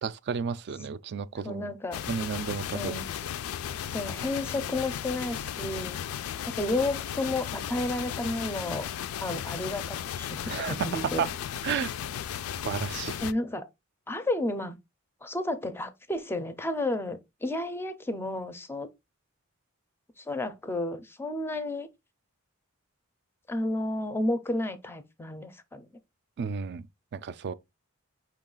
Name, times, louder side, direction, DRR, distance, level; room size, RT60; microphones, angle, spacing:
voice 1, 0.0-1.7 2.1-3.0 10.5-11.3 11.6-11.9 12.6-13.2 26.4-26.9 27.1-27.5, right 6 dB, 50° right, 0.3 m, -32 dB
voice 2, 1.4-2.0 2.7-3.1 3.9-8.9 9.2-11.3 13.2-13.7 14.1-14.8 15.2-18.9 20.2-21.9 23.5-25.9, left 2 dB, 10° left, 0.4 m, -32 dB
sound 1, 1.9-13.3, left 9 dB, 85° left, 0.3 m, -35 dB
5.5 x 2.3 x 3.7 m
head